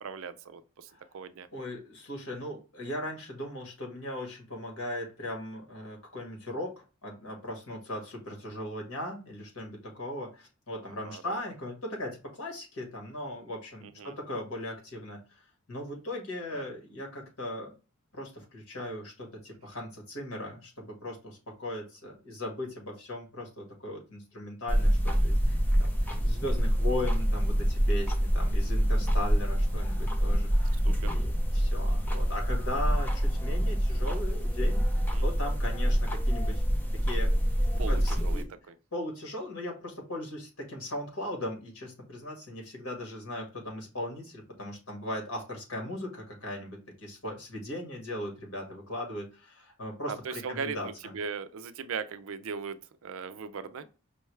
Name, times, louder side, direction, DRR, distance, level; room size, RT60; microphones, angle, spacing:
voice 1, 0.0-1.5 10.8-11.4 14.0-14.1 16.5-16.7 30.9-31.1 35.1-35.3 37.8-38.7 50.1-53.8, right 5 dB, 65° right, 0.4 m, -39 dB
voice 2, 1.5-17.7 18.1-26.0 26.2-34.8 35.2-36.6 36.9-37.4 37.7-38.5 38.9-51.2, left 1 dB, 70° left, 1.7 m, -38 dB
sound 1, 24.7-38.4, equal, 10° left, 0.5 m, -26 dB
5.4 x 2.2 x 3.2 m
head